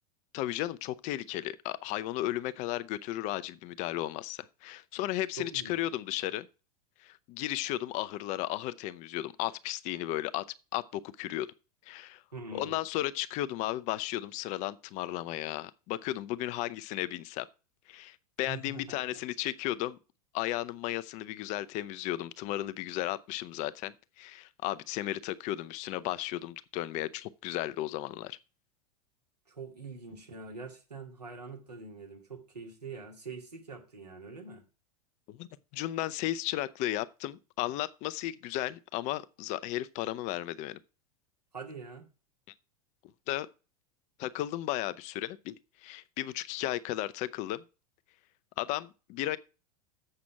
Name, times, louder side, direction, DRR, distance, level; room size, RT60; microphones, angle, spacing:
voice 1, 0.3-6.5 7.0-10.4 10.7-11.5 11.9-12.2 12.5-17.5 17.9-20.0 20.3-28.4 35.3-35.5 35.7-40.8 43.3-43.5 44.2-47.6 48.6-49.4, left 15 dB, 35° left, 0.6 m, -34 dB
voice 2, 5.4-5.8 12.3-12.8 18.5-19.0 29.5-34.6 41.5-42.1, right 4 dB, 85° right, 2.4 m, -44 dB
7.7 x 6.0 x 5.8 m
figure-of-eight pair, 90°, 20 cm